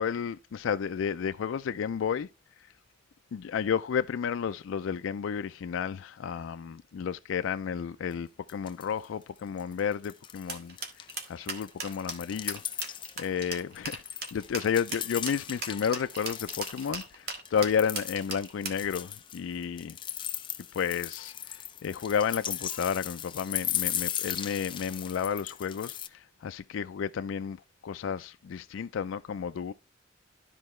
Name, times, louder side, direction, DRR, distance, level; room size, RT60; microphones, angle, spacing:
voice 1, 0.0-2.3 3.3-10.8 11.3-13.9 14.3-20.0 20.7-27.6 27.8-29.7, left 7 dB, 85° left, 0.4 m, -32 dB
sound 1, 8.1-8.2 8.5-9.0 9.4-10.5 10.8-17.0 17.4-26.1, left 10 dB, 25° left, 0.4 m, -37 dB
sound 2, 10.5-18.9, right 4 dB, 55° right, 1.5 m, -37 dB
12.5 x 4.6 x 3.1 m
head